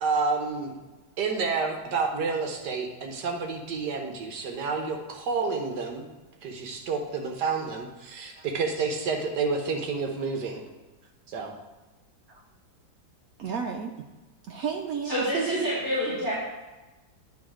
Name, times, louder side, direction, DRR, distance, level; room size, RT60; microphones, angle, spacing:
voice 1, 0.0-0.7 1.2-6.1 6.4-10.6 11.3-11.5, right 4 dB, 65° right, 3 dB, 1.3 m, -29 dB
voice 2, 13.4-14.0 14.5-15.6, right 6 dB, 80° right, 2 dB, 0.7 m, -33 dB
voice 3, 15.0-16.3, equal, 45° right, -10 dB, 3.1 m, -27 dB
9.5 x 3.9 x 4.9 m, 1.1 s
omnidirectional pair, 2.1 m